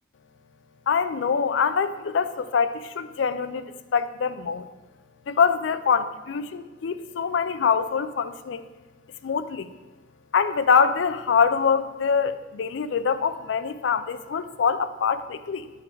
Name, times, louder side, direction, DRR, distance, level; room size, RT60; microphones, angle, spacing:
voice 1, 0.9-3.6 3.9-4.6 5.3-8.6 9.2-9.7 10.3-15.7, left 6 dB, 90° left, 13 dB, 0.4 m, -24 dB
10.5 x 3.8 x 4.4 m, 1.2 s
head